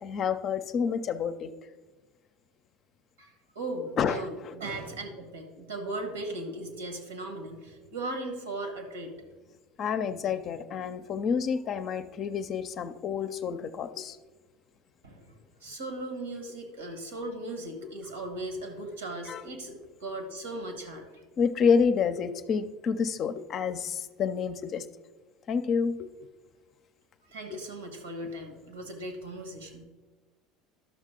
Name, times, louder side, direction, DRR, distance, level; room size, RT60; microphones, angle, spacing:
voice 1, 0.0-1.5 4.0-4.2 9.8-14.2 19.3-19.4 21.4-24.9 25.5-26.3 27.5-27.6, left 6 dB, 45° left, 10 dB, 0.5 m, -28 dB
voice 2, 3.2-9.2 15.0-15.3 15.6-21.2 27.3-29.8, right 1 dB, 80° right, 6 dB, 1.6 m, -38 dB
12.0 x 6.4 x 3.8 m, 1.3 s
figure-of-eight pair, 70°, 0 cm